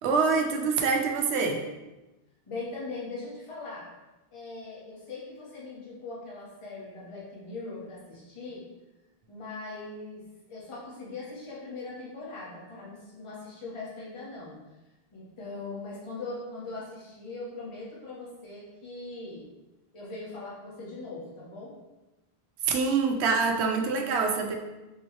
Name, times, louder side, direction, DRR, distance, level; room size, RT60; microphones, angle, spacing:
voice 1, 0.0-1.6 22.6-24.5, right 4 dB, 85° right, 3 dB, 0.8 m, -25 dB
voice 2, 2.5-3.9 4.3-8.6 9.3-14.6 15.1-19.5 19.9-21.8, left 3 dB, 30° left, -6 dB, 1.0 m, -40 dB
3.7 x 3.0 x 3.1 m, 1.0 s
omnidirectional pair, 1.1 m